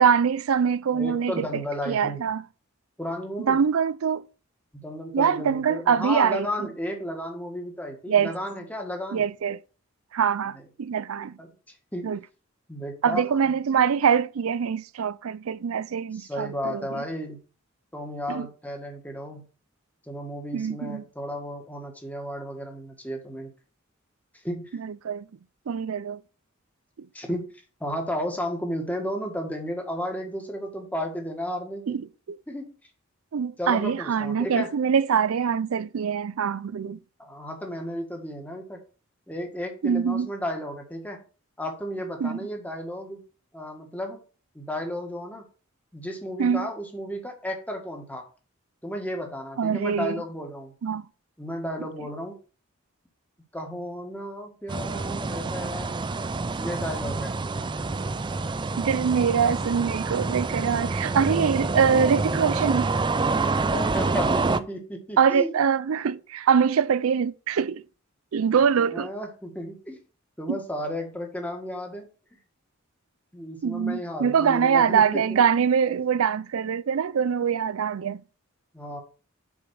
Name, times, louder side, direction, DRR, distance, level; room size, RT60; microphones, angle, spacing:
voice 1, 0.0-1.6 1.9-2.4 3.4-4.2 5.1-6.5 8.1-8.3 9.1-9.6 10.1-11.4 12.0-12.2 13.0-17.0 18.3-18.5 20.5-21.0 24.8-25.2 25.7-26.2 31.9-32.0 33.3-37.0 39.8-40.3 42.2-42.4 46.4-46.7 49.6-50.2 50.8-51.0 58.8-62.9 65.2-67.8 68.3-69.1 70.5-70.6 73.6-78.2, right 7 dB, 90° right, 0.4 m, -23 dB
voice 2, 0.9-2.2 3.0-3.6 4.8-9.3 10.5-10.6 11.4-11.5 11.9-12.1 12.7-13.4 16.1-17.4 17.9-19.5 20.1-23.5 24.4-24.7 27.1-27.5 27.8-32.0 32.5-32.7 33.6-34.7 37.2-38.8 39.3-41.2 41.6-43.2 43.5-44.2 44.5-45.4 45.9-48.2 48.8-50.7 51.4-52.4 53.5-56.0 56.6-57.3 63.7-65.6 68.5-70.0 70.4-72.1 73.3-75.4 75.9-76.0 77.6-77.7 78.7-79.0, equal, 10° left, 1.6 m, -33 dB
sound 1, 54.7-64.6, right 3 dB, 20° right, 0.4 m, -27 dB
6.1 x 5.1 x 6.3 m
head